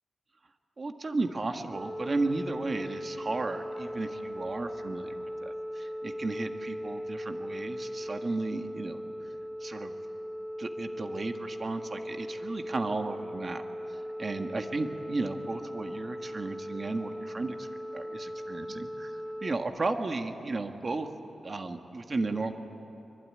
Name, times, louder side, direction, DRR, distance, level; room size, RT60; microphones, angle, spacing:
voice 1, 0.8-9.0 9.6-9.9 10.6-13.6 13.9-17.7 17.9-21.1 21.4-22.5, right 3 dB, 35° right, 6 dB, 1.6 m, -34 dB
sound 1, 1.7-19.6, equal, 5° left, 2.2 m, -39 dB
24.5 x 23.5 x 9.7 m, 3.0 s
wide cardioid pair, 145°, 0 cm